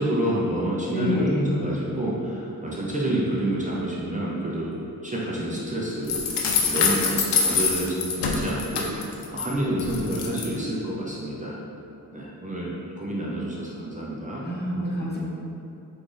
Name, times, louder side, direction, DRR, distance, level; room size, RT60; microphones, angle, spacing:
voice 1, 0.0-4.7 5.0-6.2 6.6-11.6 12.1-14.5, right 1 dB, 20° right, -6 dB, 0.7 m, -28 dB
voice 2, 0.9-1.5 14.4-15.2, left 1 dB, 25° left, -5 dB, 0.9 m, -26 dB
sound 1, 6.1-9.4 9.8-10.5, left 5 dB, 80° left, 0.6 m, -25 dB
4.5 x 2.6 x 3.8 m, 2.7 s
cardioid pair, 65°, 40 cm